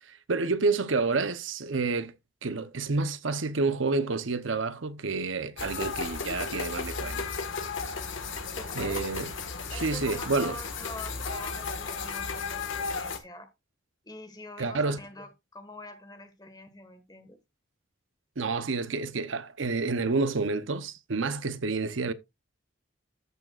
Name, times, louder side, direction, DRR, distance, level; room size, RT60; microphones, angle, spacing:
voice 1, 0.0-2.2 2.4-7.3 8.8-9.3 9.7-10.6 14.6-15.0 18.4-22.1, right 3 dB, 75° right, 0.8 m, -29 dB
sound 1, 5.6-13.2, left 4 dB, 70° left, 1.6 m, -34 dB
voice 2, 8.5-9.2 9.7-13.5 14.0-17.4, left 2 dB, 20° left, 1.6 m, -45 dB
14.0 x 6.2 x 2.4 m
head